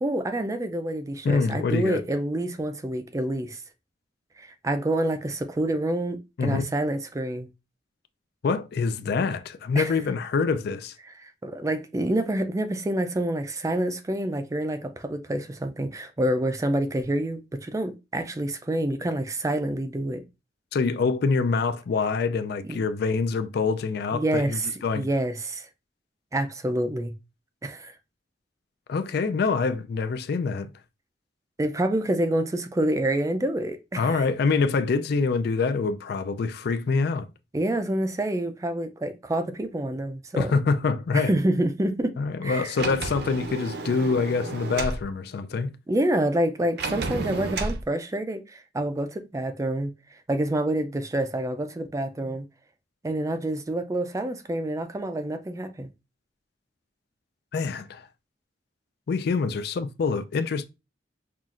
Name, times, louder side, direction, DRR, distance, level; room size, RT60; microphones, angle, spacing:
voice 1, 0.0-3.6 4.4-7.5 9.8-9.9 11.2-20.2 22.7-22.8 24.1-25.7 26.3-27.1 27.6-27.9 31.6-34.3 37.5-40.5 41.1-42.1 42.4-42.7 45.9-52.5 53.0-55.9, right 1 dB, 20° right, 0.4 m, -27 dB
voice 2, 1.2-2.0 6.4-6.6 8.4-10.9 20.7-25.1 28.9-30.7 33.9-37.3 40.4-41.3 42.2-45.7 57.5-58.1 59.1-60.6, left 4 dB, 60° left, 0.4 m, -25 dB
Sliding door, 42.7-45.0 46.8-47.8, right 3 dB, 60° right, 0.6 m, -31 dB
5.7 x 2.3 x 2.4 m
head